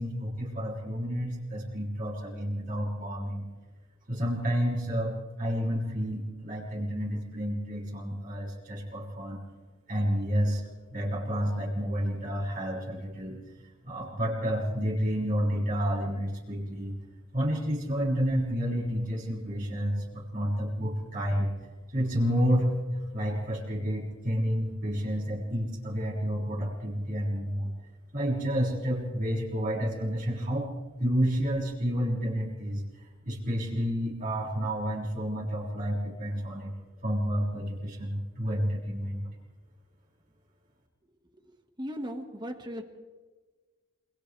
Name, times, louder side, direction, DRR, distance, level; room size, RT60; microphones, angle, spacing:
voice 1, 0.0-3.5 4.1-9.4 9.9-10.6 10.9-13.4 13.8-16.9 17.3-21.5 21.9-27.7 28.1-30.7 31.0-32.8 33.2-36.7 37.0-39.3, equal, 40° right, -5 dB, 6.3 m, -30 dB
voice 2, 41.8-42.8, equal, 20° right, 5 dB, 1.8 m, -36 dB
28.5 x 26.5 x 3.5 m, 1.3 s
head